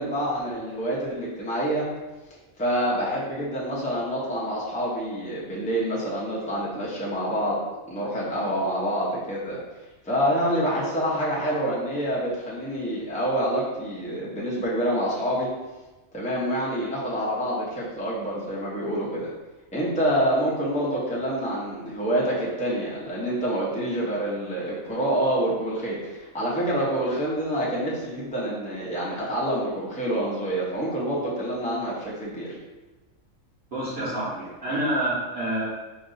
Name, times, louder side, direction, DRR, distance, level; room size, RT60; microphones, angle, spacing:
voice 1, 0.0-1.9 2.6-7.6 7.9-9.6 10.0-15.5 16.1-19.3 19.7-32.5, right 1 dB, 5° left, -7 dB, 0.8 m, -27 dB
voice 2, 33.7-35.7, right 1 dB, 50° right, -10 dB, 1.4 m, -27 dB
5.2 x 2.6 x 2.7 m, 1.2 s
omnidirectional pair, 1.4 m